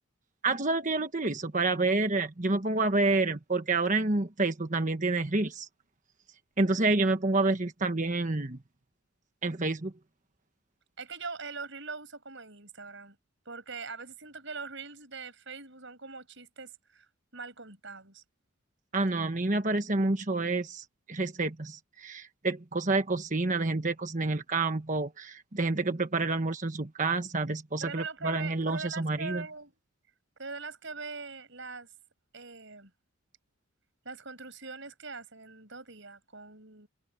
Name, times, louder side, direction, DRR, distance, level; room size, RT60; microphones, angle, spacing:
voice 1, 0.4-5.7 6.6-8.6 9.4-9.9 18.9-29.4, right 3 dB, 35° right, 1.3 m, -28 dB
voice 2, 11.0-13.2 13.5-17.1 17.3-18.2 27.8-29.7 30.4-31.9 32.3-32.9 34.0-36.9, right 4 dB, 60° right, 7.8 m, -42 dB
head